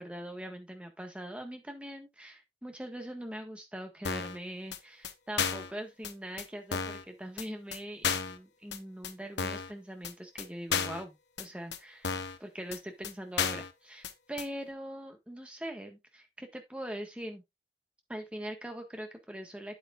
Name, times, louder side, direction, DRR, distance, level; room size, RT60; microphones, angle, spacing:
voice 1, 0.0-17.4 18.1-19.8, right 1 dB, 5° right, 1.6 m, -42 dB
sound 1, 4.0-4.4 4.7-4.8 5.0-5.1 5.4-5.7 6.0-6.1 6.4-6.5 6.7-7.0 7.4-7.5 7.7-7.8 8.0-8.4 8.7-8.8 9.0-9.1 9.4-9.7 10.0-10.1 10.4-10.5 10.7-11.0 11.4-11.5 11.7-11.8 12.0-12.4 12.7-12.8 13.0-13.1 13.4-13.7 14.0-14.1 14.4-14.5, left 6 dB, 85° left, 1.0 m, -32 dB
8.9 x 8.5 x 2.5 m
head